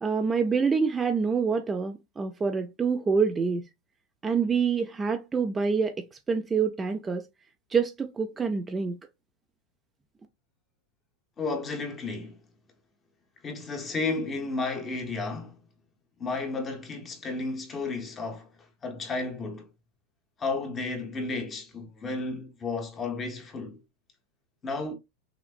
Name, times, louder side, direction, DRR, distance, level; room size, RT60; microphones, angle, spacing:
voice 1, 0.0-3.7 4.2-7.2 7.7-9.0, right 5 dB, 15° right, 0.4 m, -26 dB
voice 2, 11.4-12.4 13.4-15.6 16.2-18.5 18.8-19.7 20.4-23.8 24.6-24.9, left 3 dB, 20° left, 0.9 m, -32 dB
5.8 x 2.0 x 2.4 m
supercardioid pair, 145°, 0 cm